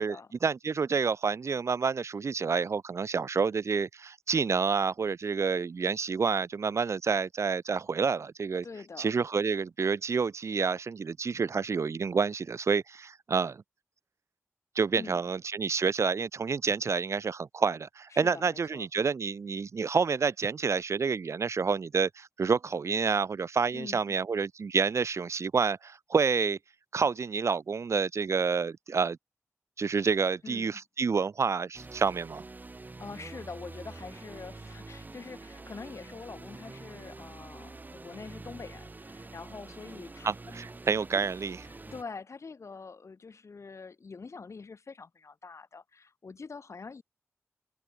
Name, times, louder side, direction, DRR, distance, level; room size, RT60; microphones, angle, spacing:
voice 1, 0.4-8.7 9.0-13.6 14.8-26.6 26.9-29.2 29.8-32.4 40.2-41.6, right 5 dB, 65° right, 0.5 m, -28 dB
voice 2, 8.6-9.1 15.0-15.2 18.1-18.9 23.7-24.2 30.4-30.8 33.0-40.6 41.1-41.3 41.7-47.0, left 4 dB, 65° left, 2.5 m, -45 dB
sound 1, 31.7-42.0, right 3 dB, 35° right, 1.2 m, -46 dB
open air
wide cardioid pair, 90°, 5 cm